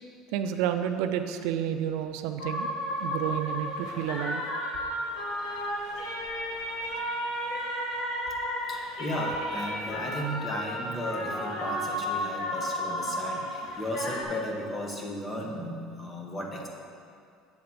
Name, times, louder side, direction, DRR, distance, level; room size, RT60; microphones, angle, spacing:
voice 1, 0.3-2.7 3.0-4.4, right 10 dB, 70° right, 8 dB, 0.4 m, -30 dB
sound 1, 2.4-14.2, equal, 80° left, 1.7 m, -33 dB
voice 2, 8.6-16.7, equal, 15° left, 0 dB, 1.0 m, -35 dB
8.2 x 3.8 x 6.8 m, 2.3 s
cardioid pair, 160°, 0 cm